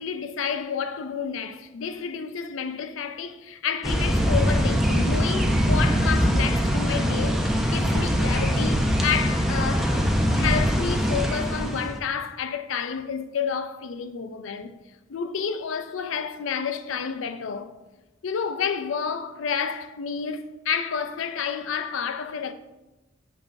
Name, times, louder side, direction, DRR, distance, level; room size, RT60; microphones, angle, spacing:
voice 1, 0.0-14.7 15.1-17.7 18.2-22.5, left 6 dB, 75° left, 0.5 m, -30 dB
sound 1, 3.8-12.0, equal, ahead, 0.6 m, -22 dB
8.2 x 5.6 x 2.6 m
head